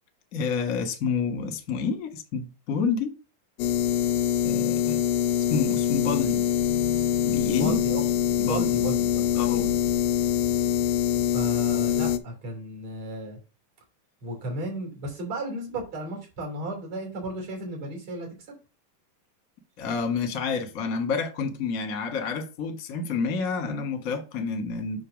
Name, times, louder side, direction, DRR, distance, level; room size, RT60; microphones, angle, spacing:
voice 1, 0.3-3.1 4.4-5.0 5.5-6.4 7.2-7.8 8.4-8.7 9.3-9.7 19.8-25.0, left 5 dB, 40° left, 1.2 m, -29 dB
sound 1, 3.6-12.2, left 10 dB, 85° left, 2.2 m, -24 dB
voice 2, 7.5-9.3 11.3-13.4 14.2-18.3, right 1 dB, 55° right, 4.1 m, -34 dB
8.2 x 3.1 x 6.3 m
omnidirectional pair, 3.8 m